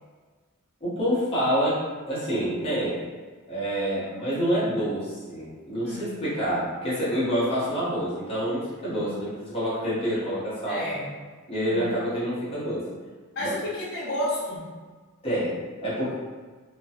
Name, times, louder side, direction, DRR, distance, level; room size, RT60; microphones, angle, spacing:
voice 1, 0.8-3.0 3.5-10.8 11.5-12.8 13.4-13.5 15.2-16.1, equal, 25° left, -10 dB, 1.1 m, -27 dB
voice 2, 5.8-6.2 8.9-9.1 10.7-11.1 11.6-11.9 13.3-14.7, left 1 dB, 55° left, -8 dB, 1.2 m, -32 dB
2.9 x 2.2 x 2.8 m, 1.4 s
head